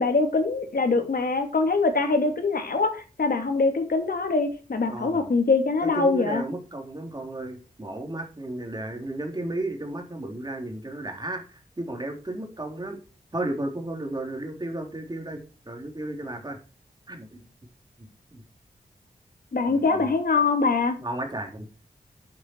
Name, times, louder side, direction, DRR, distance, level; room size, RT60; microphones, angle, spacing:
voice 1, 0.0-6.4 19.5-21.0, left 3 dB, 80° left, 6 dB, 2.6 m, -23 dB
voice 2, 4.9-5.3 5.8-13.0 13.3-15.4 15.7-16.6 17.1-17.5 18.3-18.4 19.7-20.1 21.0-21.7, right 1 dB, 25° right, 3 dB, 3.5 m, -33 dB
11.5 x 7.7 x 4.7 m, 0.33 s
wide cardioid pair, 95°, 15 cm